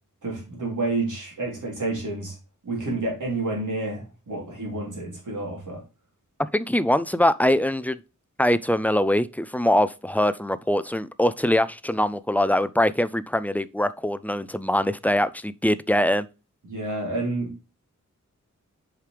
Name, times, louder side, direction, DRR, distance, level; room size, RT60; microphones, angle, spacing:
voice 1, 0.2-2.4 2.6-5.8 16.6-17.7, right 2 dB, 70° right, 3.5 m, -29 dB
voice 2, 6.5-8.0 8.4-16.3, left 1 dB, 5° left, 0.3 m, -23 dB
7.5 x 5.1 x 3.3 m
wide cardioid pair, 125°, 32 cm